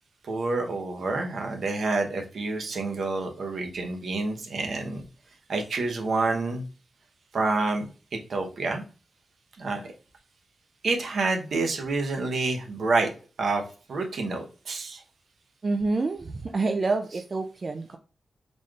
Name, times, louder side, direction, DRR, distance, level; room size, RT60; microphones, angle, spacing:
voice 1, 0.2-5.0 5.5-6.6 7.3-8.8 9.6-9.8 10.8-13.1 13.4-13.6 13.9-15.0, right 3 dB, 70° right, 4 dB, 0.8 m, -28 dB
voice 2, 15.6-18.0, right 3 dB, 40° right, 5 dB, 0.3 m, -27 dB
4.1 x 3.2 x 2.4 m, 0.36 s
wide cardioid pair, 95°, 0 cm